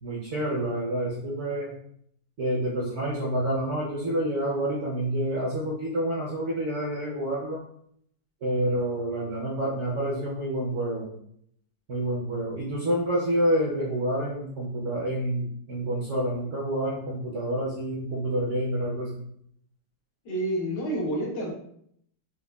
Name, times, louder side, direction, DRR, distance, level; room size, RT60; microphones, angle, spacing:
voice 1, 0.0-1.7 2.4-7.6 8.4-11.1 11.9-19.2, right 1 dB, 60° right, -5 dB, 0.8 m, -28 dB
voice 2, 20.2-21.5, right 1 dB, 85° left, -3 dB, 1.6 m, -28 dB
4.7 x 2.2 x 2.2 m, 0.68 s
omnidirectional pair, 1.9 m